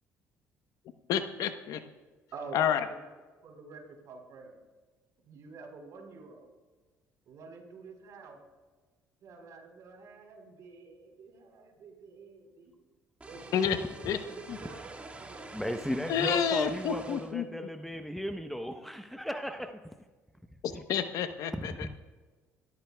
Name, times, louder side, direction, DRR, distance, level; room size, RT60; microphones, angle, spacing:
voice 1, 1.1-1.8 2.5-2.8 13.5-13.8 14.0-14.2 16.1-17.5 20.6-21.9, left 8 dB, 70° left, 9 dB, 1.0 m, -29 dB
voice 2, 2.3-3.0 3.4-4.6 5.2-6.5 7.3-8.4 9.2-12.7 13.3-15.5, right 4 dB, 65° right, 2 dB, 4.1 m, -48 dB
sound 1, 13.2-17.3, right 2 dB, 20° right, 2.0 m, -47 dB
voice 3, 15.5-19.8 20.7-20.8 21.7-21.9, equal, 5° left, 7 dB, 0.8 m, -36 dB
25.0 x 13.5 x 2.3 m, 1.3 s
supercardioid pair, 80°, 6 cm